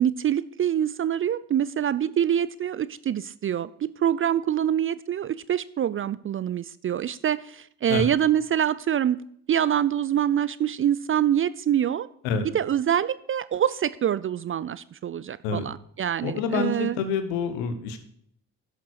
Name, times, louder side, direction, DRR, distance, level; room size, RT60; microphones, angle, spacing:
voice 1, 0.0-9.2 9.5-12.1 12.5-17.0, right 10 dB, 30° right, 17 dB, 0.4 m, -25 dB
voice 2, 16.2-18.0, left 5 dB, 75° left, 9 dB, 1.3 m, -27 dB
11.5 x 6.6 x 4.7 m, 0.66 s
hypercardioid pair, 45°, 46 cm